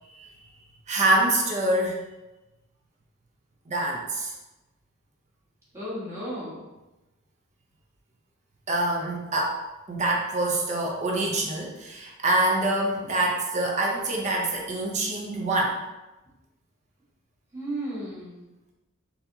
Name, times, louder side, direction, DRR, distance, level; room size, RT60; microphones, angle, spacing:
voice 1, 0.9-2.0 3.7-4.3 8.7-9.6 9.9-15.8, right 2 dB, 35° right, -1 dB, 0.5 m, -25 dB
voice 2, 5.7-6.6 17.5-18.4, right 1 dB, 15° right, -9 dB, 1.3 m, -34 dB
4.0 x 2.7 x 2.7 m, 1.0 s
head